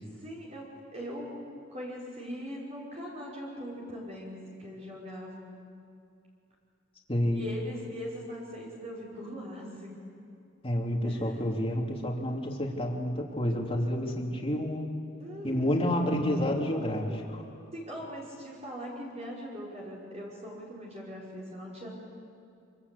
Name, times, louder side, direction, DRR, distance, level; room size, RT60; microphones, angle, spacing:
voice 1, 0.2-0.6 0.9-1.4 1.7-5.6 7.3-10.0 11.0-11.4 15.2-15.9 17.0-17.2 17.7-21.9, equal, 35° right, -5 dB, 5.4 m, -41 dB
voice 2, 7.1-7.4 10.6-14.8 15.4-17.4, left 1 dB, 30° left, 0 dB, 3.3 m, -29 dB
26.5 x 25.5 x 8.5 m, 2.5 s
head